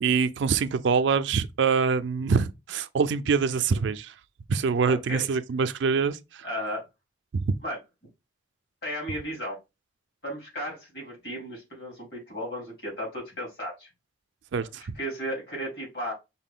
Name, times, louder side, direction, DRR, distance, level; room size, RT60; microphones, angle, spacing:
voice 1, 0.0-4.1 4.5-6.5 7.3-7.5 14.5-15.0, right 5 dB, 65° right, 0.4 m, -25 dB
voice 2, 4.9-5.2 6.4-6.8 7.6-7.8 8.8-9.6 10.2-13.9 14.6-16.1, equal, 55° left, 2.5 m, -35 dB
5.6 x 2.2 x 3.6 m
head